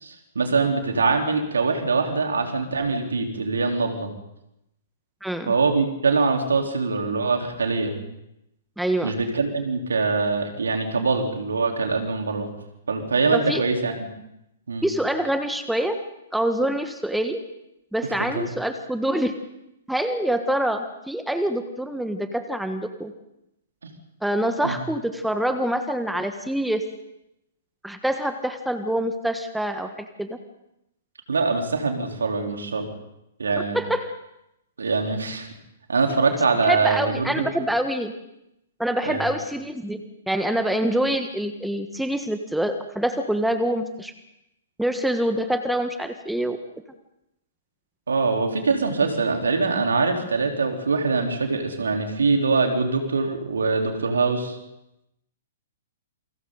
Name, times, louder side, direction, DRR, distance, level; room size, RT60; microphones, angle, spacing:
voice 1, 0.0-4.1 5.5-8.0 9.0-12.5 12.9-14.1 14.7-14.9 18.2-18.5 24.6-24.8 31.3-32.9 33.4-33.8 34.8-35.5 35.9-37.5 39.1-39.3 48.1-54.6, right 4 dB, 70° right, 3 dB, 3.8 m, -23 dB
voice 2, 5.2-5.5 8.8-9.1 13.3-13.6 14.8-16.0 16.3-17.4 17.9-19.3 19.9-23.1 24.2-26.8 27.8-29.9 30.2-30.4 33.6-34.1 36.7-38.1 38.8-40.0 40.3-44.1 44.8-46.6, right 1 dB, ahead, 8 dB, 1.5 m, -25 dB
28.0 x 24.5 x 4.0 m, 0.84 s
figure-of-eight pair, 115°, 0 cm